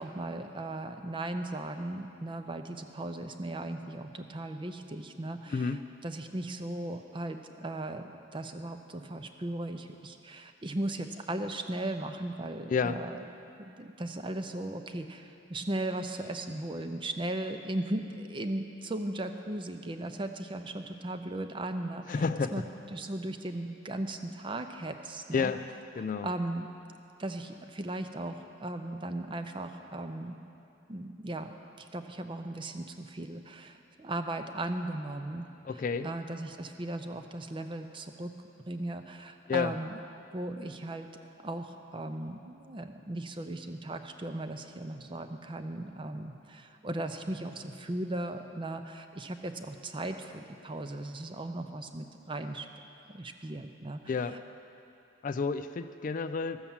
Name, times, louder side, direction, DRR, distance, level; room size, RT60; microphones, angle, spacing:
voice 1, 0.0-5.7 6.0-13.2 13.6-22.2 22.5-22.6 22.9-25.5 26.2-26.7 27.2-30.4 30.9-35.5 36.0-38.3 38.7-40.0 40.3-41.1 41.4-52.7 53.1-54.4, right 1 dB, 25° right, 7 dB, 0.5 m, -37 dB
voice 2, 5.5-5.8 12.7-13.0 22.1-22.6 25.3-25.6 26.0-26.3 35.6-36.1 39.5-39.7 54.1-54.4 55.2-56.6, left 5 dB, 40° left, 11 dB, 0.3 m, -30 dB
13.5 x 7.1 x 7.2 m, 2.7 s
head